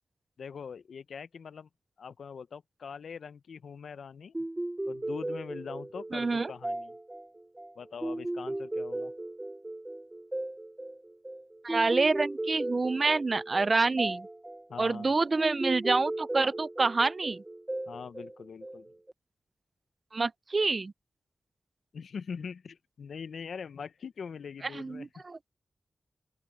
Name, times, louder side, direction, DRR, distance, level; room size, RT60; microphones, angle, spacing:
voice 1, 0.4-1.7 2.0-4.3 4.9-7.0 7.8-9.1 14.7-15.1 17.9-18.9 21.9-25.1, left 6 dB, 85° left, 0.5 m, -42 dB
sound 1, 4.3-19.1, right 1 dB, 15° right, 0.8 m, -37 dB
voice 2, 6.1-6.5 11.6-14.3 14.8-17.4 20.1-20.9 24.7-25.5, right 3 dB, 35° right, 0.3 m, -27 dB
open air
wide cardioid pair, 130°, 0 cm